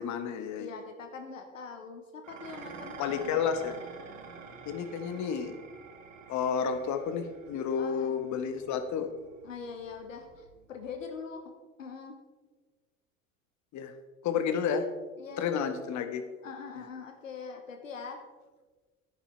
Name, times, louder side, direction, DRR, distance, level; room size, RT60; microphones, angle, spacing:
voice 1, 0.0-0.7 3.0-3.8 4.6-5.5 6.3-9.1 13.7-13.9 14.2-14.9 15.4-16.3, left 7 dB, 50° left, 8 dB, 1.5 m, -31 dB
voice 2, 0.6-3.4 7.8-8.1 9.4-11.5 11.8-12.2 15.2-15.7 16.4-18.2, left 5 dB, 85° left, 5 dB, 1.2 m, -42 dB
Dishes pots and pans, 2.2-11.1, right 5 dB, 80° right, 1.6 m, -49 dB
10.5 x 10.0 x 4.5 m, 1.3 s
hypercardioid pair, 70°, 38 cm